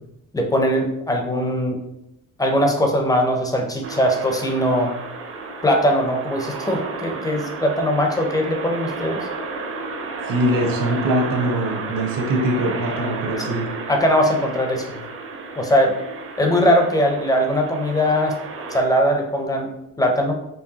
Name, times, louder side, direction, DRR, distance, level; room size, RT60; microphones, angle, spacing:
voice 1, 0.3-1.8 2.4-4.9 5.6-9.3 13.4-13.5 13.9-15.0 15.6-15.9 16.4-18.3 18.7-19.7 20.0-20.3, equal, 10° left, 2 dB, 0.4 m, -20 dB
sound 1, 3.8-18.8, right 3 dB, 40° right, 0.5 m, -32 dB
voice 2, 10.3-13.7, right 1 dB, 65° right, 1 dB, 1.0 m, -22 dB
4.6 x 2.9 x 2.8 m, 0.83 s
cardioid pair, 165°, 35 cm